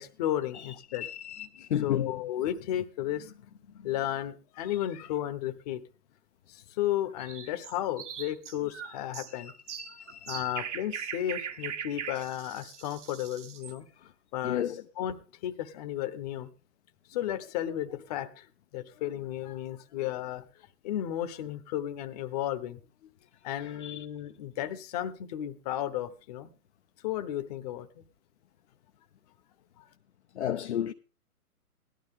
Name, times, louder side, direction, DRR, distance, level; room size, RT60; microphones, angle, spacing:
voice 1, 0.0-1.1 1.6-3.4 3.7-5.8 6.5-9.5 9.9-10.0 10.3-13.8 14.3-14.6 15.0-15.2 15.4-16.5 17.1-18.4 18.7-20.4 20.8-22.8 23.4-26.5 27.0-27.9, left 12 dB, 25° left, 1.0 m, -33 dB
voice 2, 0.5-2.1 9.3-10.4 14.4-14.8 23.6-24.1 30.3-30.9, left 10 dB, 45° left, 0.7 m, -34 dB
sound 1, 7.2-13.8, right 8 dB, 50° right, 1.4 m, -40 dB
17.0 x 12.0 x 3.6 m
hypercardioid pair, 140°, 46 cm